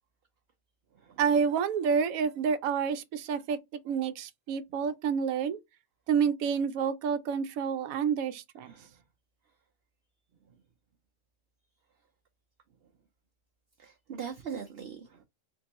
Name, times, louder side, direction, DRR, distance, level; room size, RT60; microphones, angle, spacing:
voice 1, 1.2-5.6 6.1-8.7, right 6 dB, 80° right, 1.0 m, -29 dB
voice 2, 8.6-9.0 13.8-15.2, right 7 dB, 55° right, 0.7 m, -41 dB
3.6 x 2.7 x 2.9 m
omnidirectional pair, 1.5 m